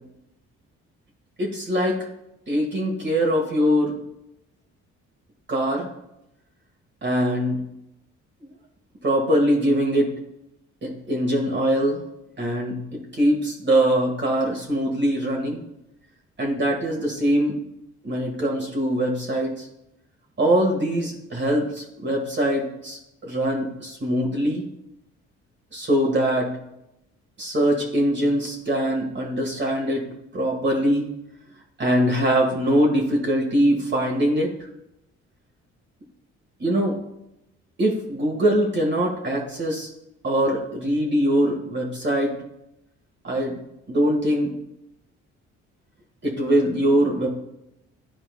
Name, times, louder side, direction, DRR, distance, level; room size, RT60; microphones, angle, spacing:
voice 1, 1.4-2.0 2.5-4.0 5.5-5.9 7.0-7.6 8.4-8.5 9.0-10.1 10.8-12.0 12.4-15.6 16.4-17.6 18.0-19.6 20.4-24.6 25.7-26.5 27.4-30.0 30.3-31.0 31.8-34.5 36.6-37.0 37.8-39.9 40.2-42.3 43.2-43.6 43.9-44.5 46.2-47.3, equal, 35° right, 0 dB, 1.6 m, -22 dB
11.5 x 4.4 x 2.2 m, 0.84 s
cardioid pair, 90°, 30 cm